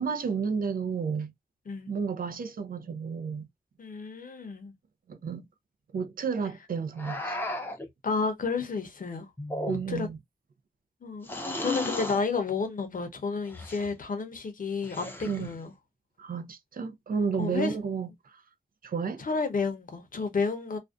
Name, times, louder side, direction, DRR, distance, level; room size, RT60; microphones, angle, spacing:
voice 1, 0.0-1.3 1.9-3.5 5.1-5.5 5.9-7.4 9.7-10.2 15.3-15.6 16.2-18.4 18.8-19.2, right 5 dB, 60° right, 0.4 m, -32 dB
voice 2, 3.8-4.7 8.0-9.3 9.7-10.1 11.0-11.3 11.6-15.7 17.4-17.7 19.2-20.8, left 4 dB, 55° left, 0.7 m, -31 dB
sound 1, 7.0-7.9 9.4-10.1 11.2-12.2 13.5-13.9 14.8-15.5, left 1 dB, 15° left, 0.5 m, -34 dB
2.5 x 2.1 x 2.3 m
wide cardioid pair, 95°, 17 cm